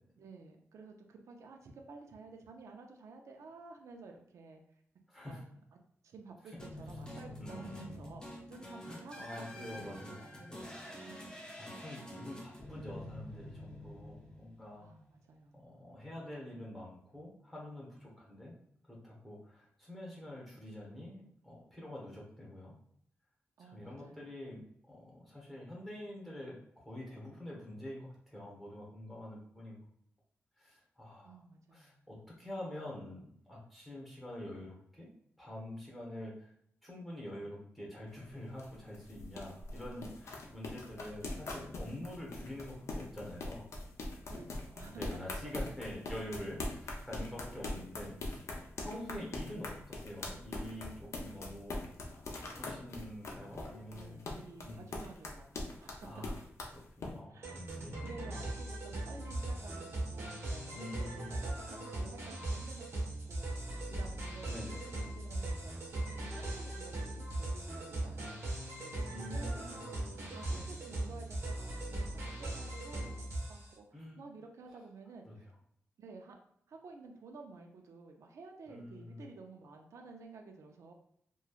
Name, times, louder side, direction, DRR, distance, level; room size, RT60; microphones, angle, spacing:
voice 1, 0.2-4.6 5.2-5.5 6.0-11.3 14.8-15.8 23.6-24.3 31.2-32.1 41.9-42.0 44.2-45.2 46.3-46.7 53.4-56.1 57.3-57.6 58.0-75.5 76.0-76.3 76.7-80.9, right 3 dB, 80° right, 3 dB, 0.4 m, -53 dB
voice 2, 5.1-5.4 7.4-8.0 8.8-10.7 11.3-14.9 15.5-18.5 18.9-22.7 23.6-26.6 26.8-29.8 30.6-31.4 31.7-35.1 35.4-36.5 36.8-43.7 44.9-48.4 48.8-51.8 52.3-54.2 54.6-54.9 56.0-56.3 56.7-58.0 58.2-58.4 60.7-61.4 64.5-64.8 69.1-69.9 70.4-70.7 73.9-74.2 75.2-75.4 78.7-79.2, left 1 dB, ahead, -4 dB, 1.0 m, -46 dB
sound 1, 6.6-14.8, left 1 dB, 15° left, 0.6 m, -47 dB
sound 2, 38.1-57.1, left 2 dB, 70° left, 0.5 m, -42 dB
sound 3, 57.4-73.7, right 1 dB, 60° right, 0.9 m, -39 dB
3.1 x 2.2 x 2.4 m, 0.70 s
wide cardioid pair, 125°, 5 cm